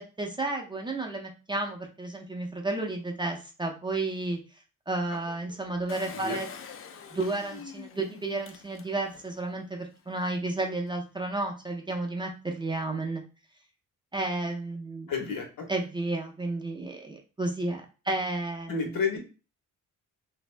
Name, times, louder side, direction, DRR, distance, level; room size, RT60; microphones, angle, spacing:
voice 1, 0.0-4.4 4.9-6.5 7.1-13.2 14.1-15.1 15.7-19.2, right 2 dB, 15° right, 1 dB, 0.5 m, -32 dB
Engine, 5.9-9.3 9.8-9.9 10.1-10.2, left 6 dB, 40° left, 0.4 m, -44 dB
voice 2, 6.1-6.4 15.1-15.7 18.7-19.2, left 5 dB, 85° left, 2 dB, 1.2 m, -31 dB
3.0 x 2.6 x 3.2 m, 0.33 s
wide cardioid pair, 170°, 33 cm